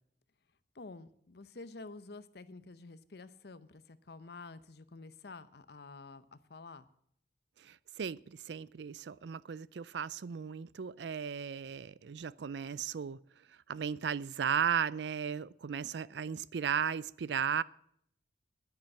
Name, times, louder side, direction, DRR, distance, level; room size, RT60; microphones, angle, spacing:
voice 1, 0.7-6.9, left 3 dB, 65° left, 0.8 m, -49 dB
voice 2, 7.6-13.2 13.7-17.6, right 7 dB, 75° right, 0.4 m, -35 dB
10.5 x 9.7 x 7.6 m
head